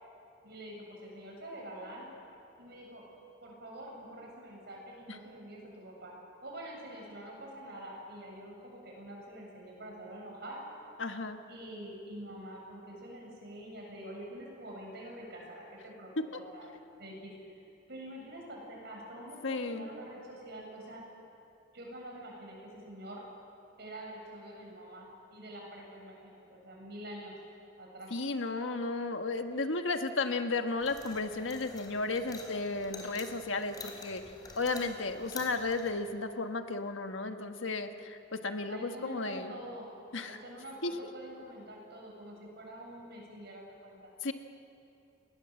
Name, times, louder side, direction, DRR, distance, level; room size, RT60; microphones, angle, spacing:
voice 1, 0.4-2.1 2.6-3.0 3.4-6.1 6.4-10.6 11.5-16.7 17.0-17.6 17.9-21.0 21.7-23.2 23.8-27.4 27.8-28.3 29.5-29.7 38.7-39.9 40.3-44.1, right 1 dB, 60° right, -1 dB, 7.5 m, -46 dB
voice 2, 11.0-11.4 19.4-19.9 28.1-34.2 34.6-39.5 40.1-40.4 40.8-40.9 44.2-44.3, left 3 dB, 85° left, 7 dB, 1.4 m, -34 dB
sound 1, 30.8-35.9, left 3 dB, 20° left, 4.1 m, -48 dB
29.0 x 20.5 x 7.7 m, 2.8 s
head